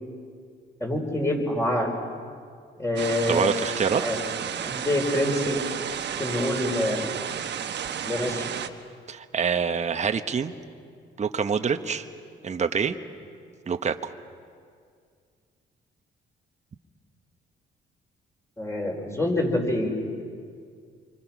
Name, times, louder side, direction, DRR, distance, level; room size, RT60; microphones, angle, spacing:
voice 1, 0.8-1.9 2.8-3.5 3.9-4.2 4.6-5.6 6.2-7.0 8.0-8.5 18.6-19.9, left 1 dB, 15° left, 1 dB, 5.0 m, -26 dB
sound 1, 3.0-8.7, right 8 dB, 60° right, 1.2 m, -32 dB
voice 2, 3.3-4.0 9.1-10.5 11.2-12.1 12.4-13.0 13.7-14.1, right 6 dB, 35° right, 8 dB, 1.1 m, -26 dB
27.5 x 24.5 x 6.1 m, 2.2 s
cardioid pair, 90°, 20 cm